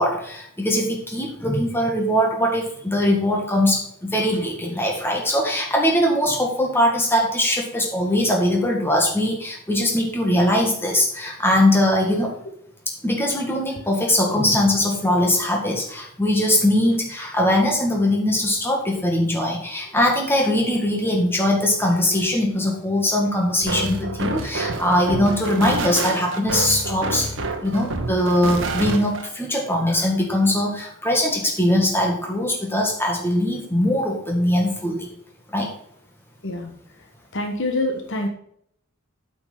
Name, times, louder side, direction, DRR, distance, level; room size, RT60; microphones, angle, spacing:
voice 1, 0.0-12.3 12.9-27.3 27.6-35.1 35.5-35.7, left 1 dB, 10° left, 0 dB, 2.1 m, -21 dB
sound 1, 23.6-29.3, right 2 dB, 60° right, 1.3 m, -28 dB
voice 2, 37.3-38.3, left 2 dB, 55° left, 4 dB, 1.3 m, -25 dB
8.3 x 6.2 x 5.7 m, 0.68 s
head